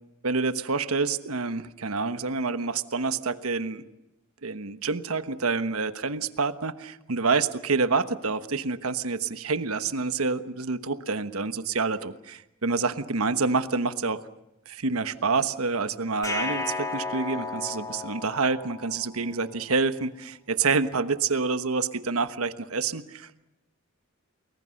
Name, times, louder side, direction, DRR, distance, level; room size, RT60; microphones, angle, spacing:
voice 1, 0.2-3.8 4.4-14.2 14.7-23.4, right 4 dB, 85° right, 11 dB, 1.2 m, -27 dB
sound 1, 16.2-19.3, left 3 dB, 15° left, 2.4 m, -33 dB
30.0 x 21.5 x 6.5 m, 0.92 s
head